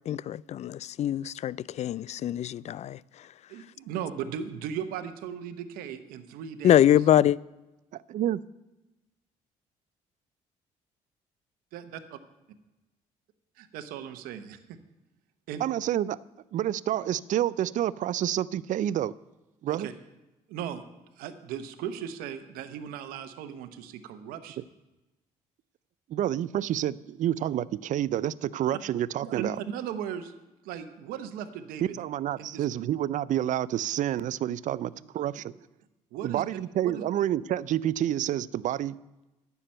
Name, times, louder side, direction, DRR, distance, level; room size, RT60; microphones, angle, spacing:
voice 1, 0.0-3.0 6.6-7.4, left 11 dB, 50° left, 0.4 m, -24 dB
voice 2, 3.5-7.1 11.7-12.2 13.6-14.6 15.5-15.6 19.7-19.9 20.5-20.8 21.2-24.6 29.2-30.3 30.6-32.0 32.4-32.7 35.0-35.1 36.1-36.5 36.8-37.0, right 8 dB, 80° right, 1.0 m, -37 dB
voice 3, 8.1-8.4 15.6-16.2 16.5-19.1 19.6-19.9 26.1-29.6 32.0-35.5 36.2-39.0, right 12 dB, 60° right, 0.4 m, -28 dB
10.0 x 7.0 x 8.8 m
supercardioid pair, 65°, 15 cm